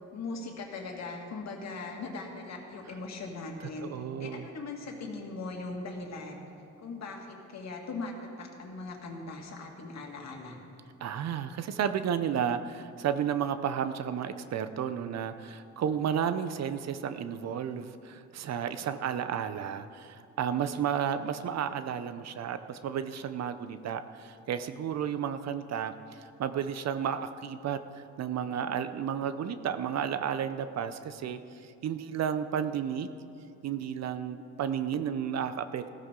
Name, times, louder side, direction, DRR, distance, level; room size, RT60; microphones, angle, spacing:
voice 1, 0.1-3.9 4.2-6.4 6.8-10.6, left 3 dB, 60° left, 1 dB, 2.2 m, -39 dB
voice 2, 3.8-4.5 11.0-33.1 33.6-35.9, right 8 dB, 60° right, 11 dB, 0.6 m, -32 dB
15.0 x 13.5 x 3.8 m, 2.5 s
cardioid pair, 90°, 30 cm